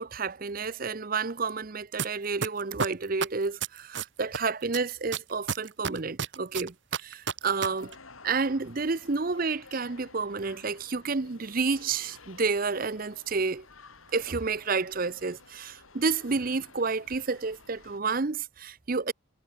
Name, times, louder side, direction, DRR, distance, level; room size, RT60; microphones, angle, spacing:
voice 1, 0.0-7.9 8.2-13.7 14.1-19.1, right 4 dB, 45° right, 0.7 m, -30 dB
sound 1, 2.0-2.1 2.4-4.4 4.7-7.7 7.9-8.0, right 6 dB, 60° right, 1.3 m, -30 dB
sound 2, 7.4-18.0, left 4 dB, 90° left, 5.1 m, -53 dB
head